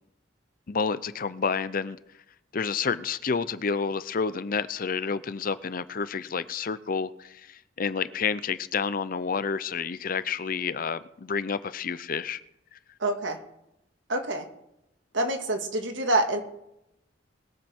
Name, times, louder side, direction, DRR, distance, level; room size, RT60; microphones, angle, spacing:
voice 1, 0.7-2.0 2.5-12.4, left 5 dB, 50° left, 0.6 m, -29 dB
voice 2, 13.0-13.4 14.1-14.5 15.1-16.4, right 2 dB, 75° right, 1.8 m, -26 dB
21.0 x 7.5 x 4.5 m
head